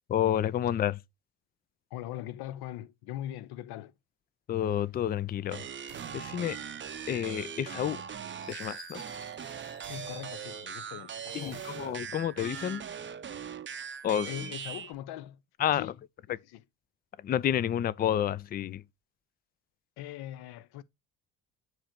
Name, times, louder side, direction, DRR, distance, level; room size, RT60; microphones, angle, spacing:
voice 1, 0.1-1.0 4.5-5.7 6.1-6.6 7.1-8.0 8.5-9.0 11.3-12.8 14.0-14.5 15.6-15.9 16.3-16.4 17.2-18.8, left 10 dB, 20° left, 0.3 m, -30 dB
voice 2, 1.9-3.9 9.9-11.6 14.3-15.4 15.7-15.9 16.3-16.6 20.0-20.8, left 13 dB, 55° left, 0.7 m, -41 dB
sound 1, 5.5-14.9, right 7 dB, 25° right, 0.6 m, -40 dB
sound 2, 5.9-7.7 9.8-11.6, right 11 dB, 55° right, 1.0 m, -54 dB
Fireworks, 8.4-10.9 11.2-12.1, left 4 dB, 85° left, 2.6 m, -54 dB
7.3 x 3.1 x 4.4 m
hypercardioid pair, 50°, 46 cm